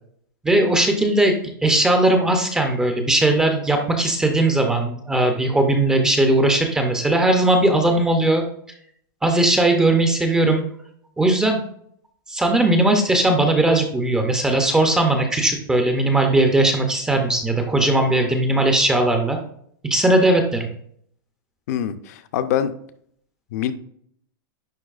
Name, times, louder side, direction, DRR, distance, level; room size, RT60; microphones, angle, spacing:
voice 1, 0.4-1.3 1.6-8.4 9.2-10.6 11.2-11.6 12.3-19.4 19.9-20.7, right 2 dB, 5° right, 4 dB, 0.5 m, -18 dB
voice 2, 21.7-22.7 23.5-23.7, left 10 dB, 45° left, 12 dB, 0.5 m, -24 dB
9.9 x 3.9 x 2.4 m, 0.66 s
supercardioid pair, 170°, 12 cm